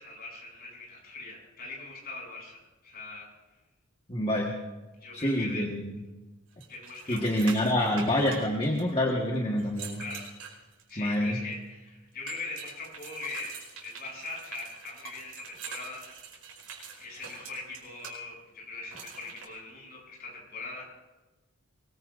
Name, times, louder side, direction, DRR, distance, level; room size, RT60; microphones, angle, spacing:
voice 1, 0.0-3.3 5.0-5.7 6.7-7.7 10.0-10.2 10.9-13.5 13.8-16.0 17.0-20.8, left 3 dB, 45° left, -2 dB, 7.5 m, -41 dB
voice 2, 4.1-4.5 5.1-6.0 7.1-10.0 11.0-11.4, left 1 dB, 25° left, 0 dB, 1.5 m, -27 dB
sound 1, 6.6-9.1 9.6-11.1 12.3-18.1 18.9-19.5, right 6 dB, 75° right, 4.8 m, -45 dB
22.5 x 21.0 x 2.6 m, 1.1 s
head